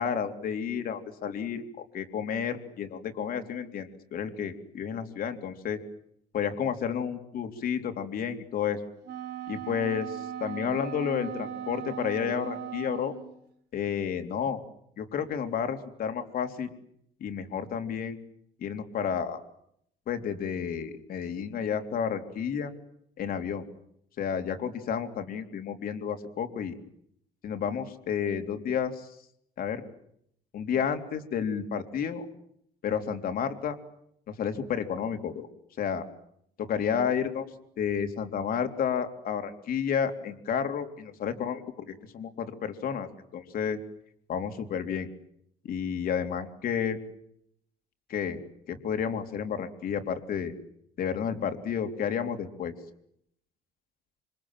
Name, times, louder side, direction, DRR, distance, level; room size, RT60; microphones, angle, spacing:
voice 1, 0.0-1.6 1.9-5.8 6.3-8.8 9.5-13.1 13.7-14.6 15.0-16.7 17.2-18.2 18.6-19.4 20.1-22.7 23.2-23.6 24.2-26.7 27.4-29.2 29.6-29.8 30.5-32.2 32.8-33.8 34.3-35.5 35.8-36.0 36.6-37.5 37.8-43.8 44.3-45.1 45.6-47.0 48.1-48.4 48.7-50.5 51.0-52.7, left 7 dB, 60° left, 6 dB, 3.6 m, -31 dB
Wind instrument woodwind instrument, 9.0-13.4, right 10 dB, 80° right, 3.8 m, -38 dB
27.5 x 26.0 x 7.6 m, 0.72 s
cardioid pair, 110°, 17 cm